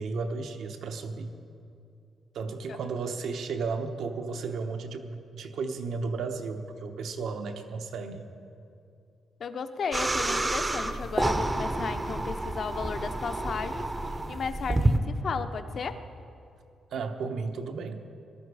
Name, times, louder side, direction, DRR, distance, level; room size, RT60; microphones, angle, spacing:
voice 1, 0.0-1.3 2.3-8.3 16.9-18.0, right 4 dB, 70° right, 6 dB, 1.0 m, -34 dB
voice 2, 9.4-16.0, left 5 dB, 45° left, 9 dB, 0.6 m, -34 dB
sound 1, 9.9-15.0, right 2 dB, 15° right, 0.6 m, -29 dB
18.0 x 12.0 x 4.8 m, 2.5 s
wide cardioid pair, 165°, 0 cm